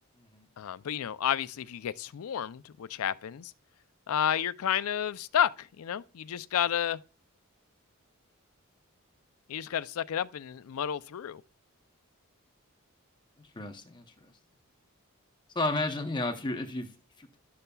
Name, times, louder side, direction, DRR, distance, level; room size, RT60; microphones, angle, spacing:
voice 1, 0.6-3.5 4.1-7.0 9.5-11.4, left 9 dB, 75° left, 0.4 m, -31 dB
voice 2, 13.4-14.3 15.5-17.4, left 2 dB, 20° left, 0.7 m, -33 dB
12.0 x 6.7 x 2.3 m
head